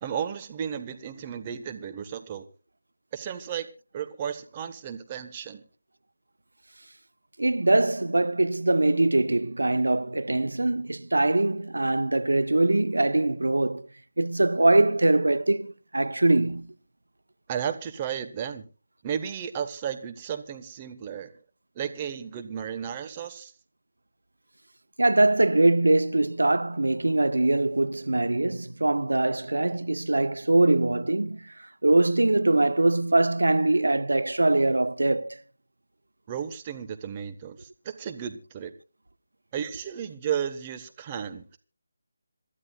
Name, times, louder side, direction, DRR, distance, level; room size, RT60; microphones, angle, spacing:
voice 1, 0.0-2.5 3.1-3.7 3.9-5.6 17.5-18.6 19.0-21.3 21.7-23.5 36.3-38.7 39.5-41.4, right 8 dB, 25° right, 1.3 m, -33 dB
voice 2, 7.4-13.9 14.2-16.7 25.0-35.4, right 2 dB, 85° right, 0.8 m, -23 dB
27.0 x 12.5 x 2.3 m
figure-of-eight pair, 160°, 0 cm